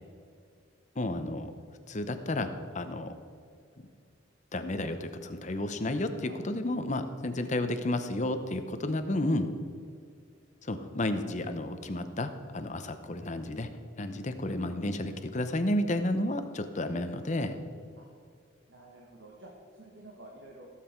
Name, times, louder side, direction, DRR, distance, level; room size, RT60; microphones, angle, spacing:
voice 1, 1.0-1.5 1.9-2.5 2.7-3.1 4.5-9.5 10.6-13.7 14.0-17.6, left 1 dB, 40° left, 8 dB, 0.8 m, -31 dB
voice 2, 18.7-20.7, right 1 dB, 75° right, -1 dB, 1.6 m, -51 dB
16.0 x 7.5 x 4.5 m, 2.3 s
head